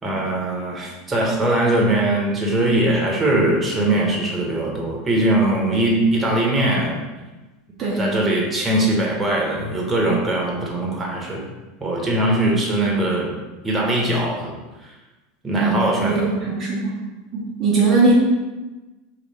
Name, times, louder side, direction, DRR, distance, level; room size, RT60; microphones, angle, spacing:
voice 1, 0.0-6.9 8.0-11.4 11.8-13.3 13.6-14.5 14.8-14.9 15.4-16.3, right 1 dB, 20° right, -3 dB, 1.2 m, -21 dB
voice 2, 7.8-8.1 15.6-17.0 17.3-18.1, right 3 dB, 40° right, -5 dB, 0.9 m, -20 dB
3.2 x 2.9 x 4.2 m, 1.2 s
hypercardioid pair, 90°, 0 cm